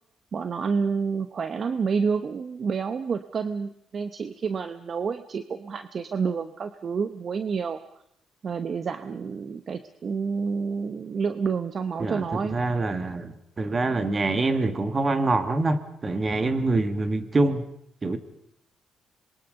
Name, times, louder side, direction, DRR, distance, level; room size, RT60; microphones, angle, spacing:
voice 1, 0.3-7.8 8.4-12.6, right 5 dB, 50° right, 10 dB, 1.0 m, -29 dB
voice 2, 12.0-17.7 18.0-18.2, right 2 dB, 35° right, 10 dB, 2.1 m, -25 dB
26.5 x 22.0 x 5.4 m, 0.73 s
cardioid pair, 85°, 0 cm